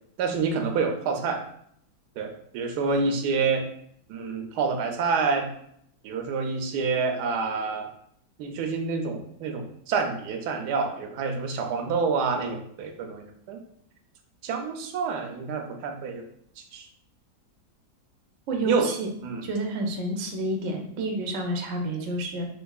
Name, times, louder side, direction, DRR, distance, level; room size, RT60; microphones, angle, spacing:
voice 1, 0.2-1.4 2.2-3.7 4.1-5.5 6.0-7.9 8.4-13.6 14.4-16.2 16.7-16.9 18.6-18.9 19.2-19.4, right 5 dB, 85° right, 4 dB, 1.1 m, -27 dB
voice 2, 18.5-19.1 19.4-22.5, right 1 dB, 65° right, 2 dB, 0.9 m, -29 dB
3.5 x 3.1 x 2.3 m, 0.68 s
omnidirectional pair, 1.7 m